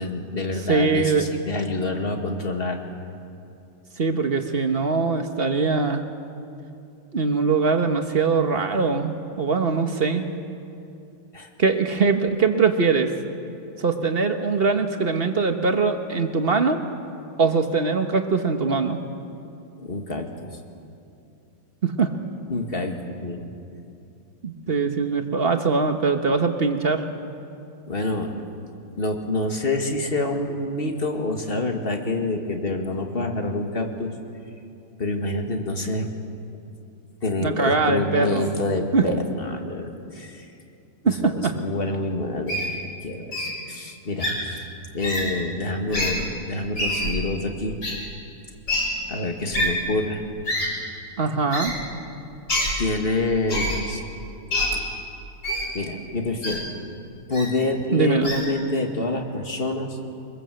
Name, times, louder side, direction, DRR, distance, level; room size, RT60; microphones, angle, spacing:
voice 1, 0.0-2.8 11.3-11.5 19.8-20.6 22.5-23.5 27.9-28.3 29.0-34.1 35.0-36.1 37.2-40.5 41.2-47.8 49.1-50.2 52.8-54.0 55.7-56.7 57.3-60.0, left 2 dB, 30° left, 4 dB, 1.9 m, -27 dB
voice 2, 0.7-1.3 4.0-6.0 7.1-10.3 11.6-13.1 13.8-16.8 17.4-19.0 21.8-22.1 24.4-27.0 37.4-38.5 38.9-39.1 41.0-41.5 51.2-51.7 57.9-58.3, right 4 dB, 35° right, 6 dB, 1.1 m, -22 dB
Wild animals, 42.5-42.7 43.3-43.5 44.2-44.3 45.0-45.2 45.9-46.1 46.7-47.1 47.8-47.9 48.7-48.8 49.5-49.7 50.5-50.7 51.5-51.7 52.5-52.7 53.5-53.8 54.5-54.7 55.4-55.7 56.4-56.6 57.3-57.5 58.2-58.4, left 1 dB, 50° left, 5.7 m, -25 dB
23.5 x 21.5 x 7.8 m, 2.7 s
omnidirectional pair, 2.3 m